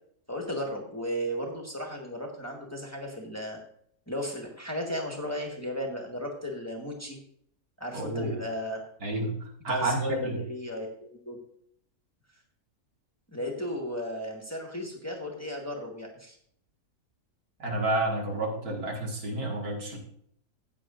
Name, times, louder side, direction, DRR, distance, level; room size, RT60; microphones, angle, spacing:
voice 1, 0.3-3.6 4.1-7.2 7.8-8.8 9.7-11.4 13.3-16.4, equal, 10° left, 0 dB, 1.5 m, -35 dB
voice 2, 7.9-8.4 9.0-9.3 9.6-10.4 17.6-20.0, right 2 dB, 70° right, 0 dB, 2.4 m, -30 dB
14.5 x 8.8 x 2.5 m, 0.67 s
omnidirectional pair, 1.6 m